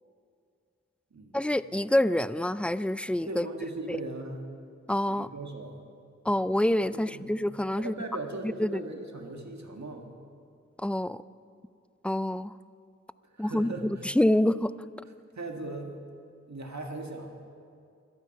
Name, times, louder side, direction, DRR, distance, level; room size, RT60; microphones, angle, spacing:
voice 1, 1.3-3.5 3.9-4.0 4.9-5.3 6.2-7.9 8.4-8.8 10.8-11.2 12.0-12.5 13.4-14.7, left 1 dB, 5° left, 0.3 m, -27 dB
voice 2, 3.3-4.4 5.1-5.8 6.9-7.4 7.8-10.1 13.3-13.9 15.3-15.9 16.5-17.3, right 2 dB, 70° right, 1.9 m, -38 dB
23.5 x 9.0 x 5.5 m
wide cardioid pair, 55°, 29 cm